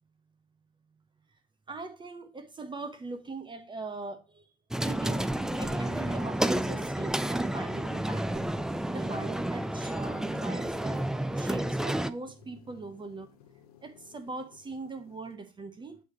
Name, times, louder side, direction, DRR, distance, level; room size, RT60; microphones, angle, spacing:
voice 1, 1.7-4.5 4.8-8.5 8.9-11.1 11.3-13.3 13.8-16.0, right 3 dB, 25° right, 0.8 m, -41 dB
sound 1, 4.7-12.1, right 1 dB, 5° right, 0.3 m, -30 dB
sound 2, 5.3-15.3, left 9 dB, 80° left, 0.6 m, -54 dB
7.8 x 3.3 x 4.4 m
hypercardioid pair, 60°, 19 cm